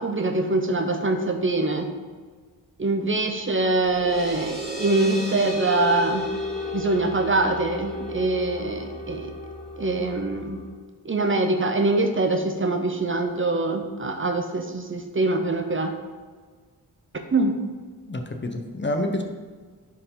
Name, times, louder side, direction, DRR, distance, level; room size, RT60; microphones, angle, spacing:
voice 1, 0.0-1.9 2.8-6.2 6.7-9.3 9.8-10.6 11.0-15.9 17.3-17.6, right 2 dB, 30° right, 5 dB, 0.7 m, -24 dB
sound 1, 3.5-10.7, right 1 dB, ahead, 2.5 m, -34 dB
voice 2, 18.1-19.2, left 1 dB, 30° left, 5 dB, 0.9 m, -28 dB
10.5 x 4.8 x 3.8 m, 1.5 s
wide cardioid pair, 90°, 38 cm